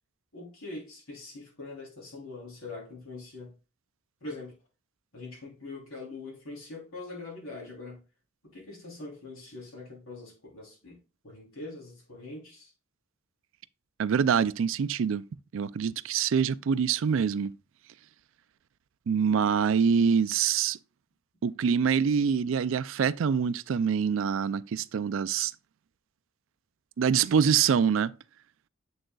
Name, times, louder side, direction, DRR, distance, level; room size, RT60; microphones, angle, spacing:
voice 1, 0.3-3.6 4.2-4.6 5.1-8.0 8.5-11.0 11.2-12.7, left 2 dB, 80° left, 3.3 m, -43 dB
voice 2, 14.0-15.2 15.5-17.5 19.1-20.8 21.4-25.5 27.0-28.1, right 7 dB, 70° right, 0.4 m, -25 dB
7.6 x 6.3 x 2.3 m
head